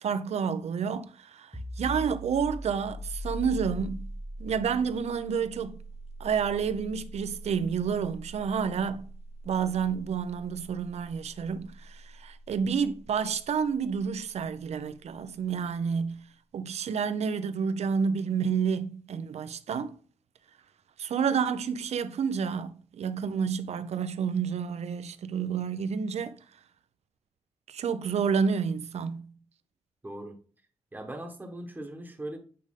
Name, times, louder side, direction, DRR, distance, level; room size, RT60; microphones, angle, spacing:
voice 1, 0.0-4.1 4.4-5.8 6.2-9.1 9.5-16.2 16.5-20.0 21.0-26.4 27.7-29.3, right 6 dB, 70° right, 0.7 m, -29 dB
sound 1, 1.5-13.0, equal, 5° left, 1.2 m, -41 dB
voice 2, 30.0-30.4 30.9-32.4, right 1 dB, 15° right, 1.1 m, -39 dB
8.7 x 5.0 x 3.7 m
wide cardioid pair, 175°, 11 cm